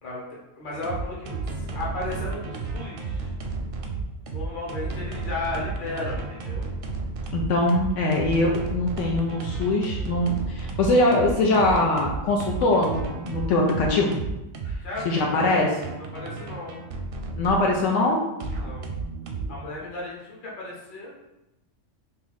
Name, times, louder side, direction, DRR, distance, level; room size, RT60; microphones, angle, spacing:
voice 1, 0.0-3.3 4.3-6.7 14.8-16.9 18.6-18.9 19.5-21.2, left 2 dB, 45° left, -5 dB, 1.1 m, -35 dB
sound 1, 0.7-17.7 18.4-19.6, right 4 dB, 60° right, 0.6 m, -32 dB
voice 2, 7.3-14.3 14.6-14.8 15.0-15.7 17.3-18.2, left 2 dB, 80° left, -1 dB, 0.9 m, -22 dB
2.8 x 2.6 x 3.9 m, 0.94 s
omnidirectional pair, 1.3 m